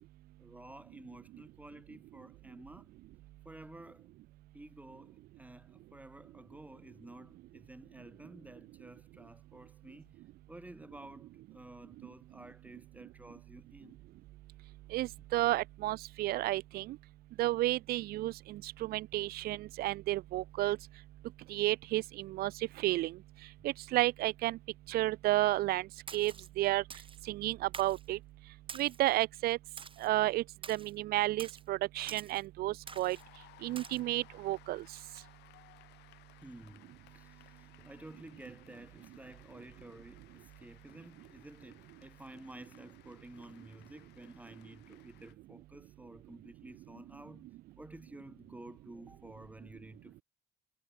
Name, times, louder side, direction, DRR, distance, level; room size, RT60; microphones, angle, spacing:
voice 1, 0.4-2.9 3.4-4.1 4.5-10.2 10.5-14.0 36.4-36.9 37.1-50.2, right 1 dB, 10° right, 2.4 m, -52 dB
voice 2, 14.9-17.0 17.4-20.8 21.5-22.5 22.8-23.2 23.6-24.6 24.9-25.9 26.1-26.8 27.3-28.2 28.8-29.6 30.0-33.2 33.6-34.8, right 17 dB, 65° right, 0.4 m, -32 dB
Splash splatter, 26.1-26.5 26.9-27.2 27.7-28.1 28.7-29.1 29.8-30.1 30.6-30.9 31.4-31.6 32.1-32.4 32.9-33.2 33.8-34.0, right 5 dB, 30° right, 5.2 m, -47 dB
Cheering / Applause, 32.9-45.3, left 18 dB, 85° left, 5.5 m, -62 dB
cardioid pair, 110°, 17 cm